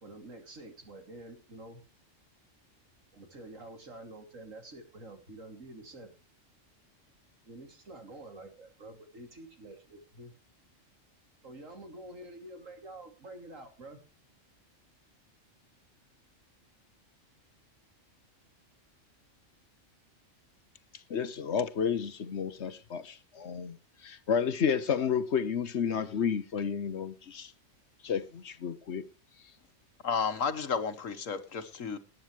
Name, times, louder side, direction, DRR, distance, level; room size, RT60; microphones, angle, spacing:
voice 1, 0.0-1.8 3.1-6.1 7.4-10.3 11.4-14.0, right 2 dB, 75° right, 3.2 m, -48 dB
voice 2, 21.1-27.5 28.0-29.0, left 7 dB, 60° left, 1.2 m, -31 dB
voice 3, 30.0-32.0, left 6 dB, 75° left, 1.7 m, -32 dB
19.5 x 9.4 x 3.2 m
omnidirectional pair, 1.3 m